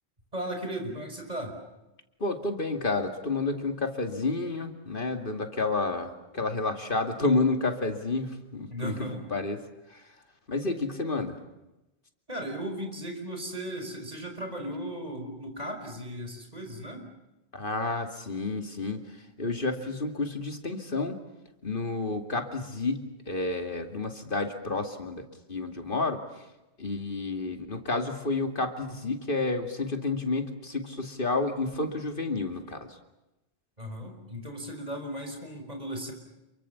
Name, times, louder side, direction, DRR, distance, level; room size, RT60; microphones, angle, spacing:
voice 1, 0.3-1.6 8.7-9.2 12.3-17.1 33.8-36.1, right 1 dB, 40° right, 4 dB, 5.5 m, -36 dB
voice 2, 2.2-9.6 10.5-11.4 17.5-19.0 19.4-21.2 21.6-25.2 25.5-26.2 26.8-32.8, left 3 dB, 55° left, 6 dB, 2.7 m, -30 dB
28.5 x 23.5 x 7.1 m, 0.98 s
omnidirectional pair, 1.1 m